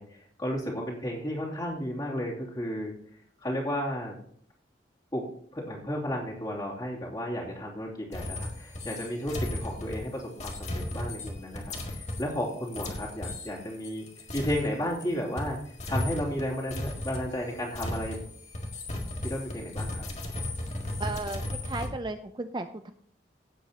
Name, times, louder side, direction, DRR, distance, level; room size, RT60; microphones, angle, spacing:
voice 1, 0.0-2.9 3.4-4.2 5.1-14.1 14.3-15.6 15.9-18.2 19.2-20.0, equal, 20° left, -4 dB, 2.8 m, -33 dB
sound 1, 8.1-15.1 15.4-21.9, left 1 dB, 40° left, 1.8 m, -36 dB
voice 2, 21.0-22.9, right 2 dB, 25° right, 8 dB, 0.4 m, -35 dB
16.5 x 8.0 x 2.9 m, 0.63 s
head